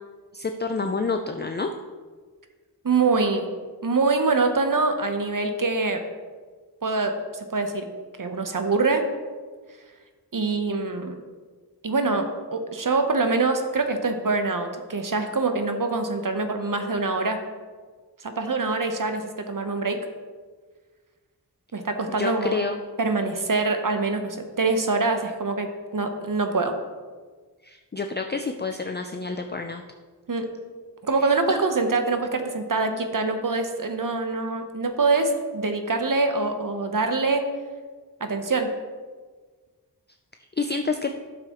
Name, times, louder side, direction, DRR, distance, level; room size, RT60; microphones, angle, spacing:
voice 1, 0.3-1.7 22.2-22.8 27.6-29.8 31.2-31.3 40.6-41.1, left 4 dB, 25° left, 5 dB, 0.4 m, -28 dB
voice 2, 2.8-3.5 3.8-6.1 6.8-7.9 8.2-9.1 10.3-11.1 11.8-17.4 18.2-20.0 21.7-22.6 23.0-26.8 30.3-30.5 31.0-37.5 38.2-38.8, right 3 dB, 50° right, 6 dB, 0.8 m, -24 dB
9.0 x 6.8 x 3.0 m, 1.5 s
wide cardioid pair, 45°, 41 cm